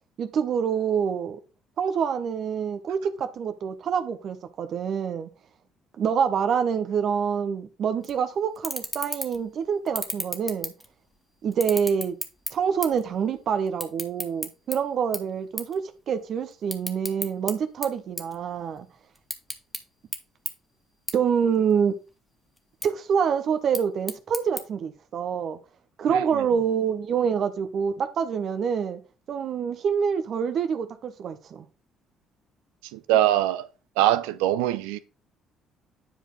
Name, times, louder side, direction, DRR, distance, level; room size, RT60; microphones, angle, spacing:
voice 1, 0.2-1.4 1.8-5.3 6.0-10.7 11.4-12.2 12.5-18.9 21.1-21.9 22.8-25.6 26.0-29.0 29.3-31.7, right 7 dB, 50° right, 1.1 m, -26 dB
sound 1, 8.0-8.2 8.6-9.5 9.9-11.1 11.5-13.1 13.3-14.8 15.1-15.3 15.6-15.8 16.1-17.5 17.8-18.8 19.1-19.8 20.1-20.2 20.5-20.6 21.1-21.2 21.6-22.1 22.6-22.9 23.5-24.6, left 1 dB, 10° left, 1.8 m, -33 dB
voice 2, 32.9-33.7 34.0-35.0, right 13 dB, 70° right, 0.6 m, -22 dB
10.0 x 4.6 x 3.9 m
figure-of-eight pair, 50°, 0 cm